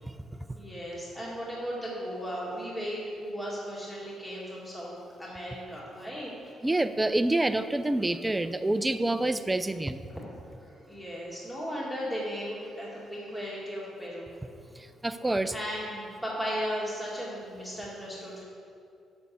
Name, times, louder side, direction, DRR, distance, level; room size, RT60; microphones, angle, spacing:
voice 1, 0.6-4.9 5.2-6.3 10.1-10.2 10.6-14.3 15.5-18.4, equal, 10° left, -6 dB, 2.1 m, -36 dB
voice 2, 6.6-10.0 15.0-15.5, right 2 dB, 15° right, 10 dB, 0.4 m, -27 dB
6.7 x 6.2 x 6.8 m, 2.5 s
cardioid pair, 90°, 0 cm